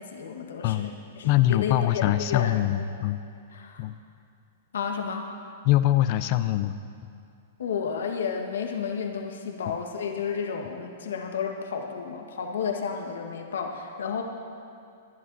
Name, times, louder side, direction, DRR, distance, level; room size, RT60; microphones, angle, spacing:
voice 1, 0.0-2.5 3.5-3.8 4.7-5.3 7.6-14.2, left 6 dB, 90° left, 2 dB, 1.5 m, -32 dB
voice 2, 1.2-3.2 3.8-4.0 5.6-6.7, left 14 dB, 40° left, 12 dB, 0.5 m, -23 dB
20.0 x 11.5 x 4.1 m, 2.5 s
hypercardioid pair, 150°, 0 cm